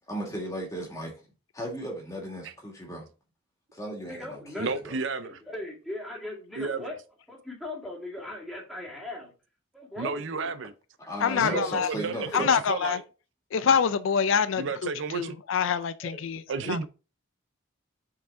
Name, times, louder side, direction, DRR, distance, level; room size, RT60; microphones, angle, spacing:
voice 1, 0.1-1.1 1.5-3.0 3.7-5.0 11.0-12.5, equal, 15° left, 2.0 m, -36 dB
voice 2, 4.1-4.8 5.2-7.0 7.3-9.3 9.7-10.5 11.4-11.6 12.2-12.4 16.0-16.2 16.5-16.7, left 1 dB, ahead, 2.1 m, -39 dB
voice 3, 4.6-5.4 6.6-6.9 10.0-10.7 11.4-13.0 14.6-15.4 16.5-16.9, right 4 dB, 60° right, 0.4 m, -32 dB
voice 4, 11.2-11.9 12.3-13.0 13.5-16.8, left 7 dB, 70° left, 0.4 m, -26 dB
5.8 x 4.9 x 3.6 m
head